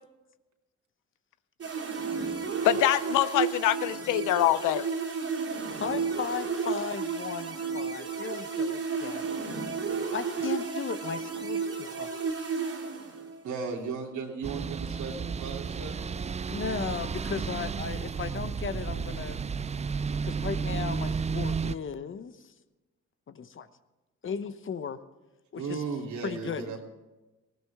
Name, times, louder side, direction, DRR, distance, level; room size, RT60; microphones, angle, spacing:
sound 1, 1.6-13.5, right 5 dB, 50° right, 3.0 m, -32 dB
voice 1, 2.6-4.9, left 13 dB, 85° left, 16 dB, 0.6 m, -24 dB
voice 2, 5.8-9.3 10.1-12.1 16.5-19.4 20.2-22.3 23.3-23.7 24.2-25.0 25.5-25.8 26.2-26.8, left 6 dB, 40° left, 12 dB, 0.9 m, -36 dB
voice 3, 13.4-16.0 25.5-26.8, right 5 dB, 70° right, 0 dB, 3.0 m, -36 dB
sound 2, 14.4-21.7, right 5 dB, 25° right, 0.4 m, -32 dB
19.0 x 16.0 x 3.6 m, 1.1 s
cardioid pair, 90°, 30 cm